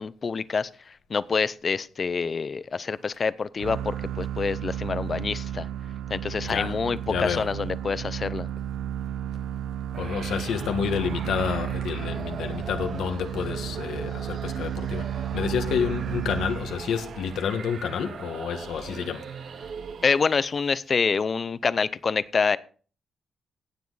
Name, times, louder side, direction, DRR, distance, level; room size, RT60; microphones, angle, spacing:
voice 1, 0.0-5.7 6.1-8.5 20.0-22.6, left 5 dB, 40° left, 0.6 m, -27 dB
sound 1, 3.6-17.0, right 10 dB, 90° right, 0.5 m, -33 dB
voice 2, 6.5-6.8 7.1-7.5 9.9-19.7, left 7 dB, 85° left, 1.6 m, -29 dB
sound 2, 9.9-20.5, right 6 dB, 60° right, 0.9 m, -39 dB
16.5 x 7.3 x 4.1 m
cardioid pair, 100°, 0 cm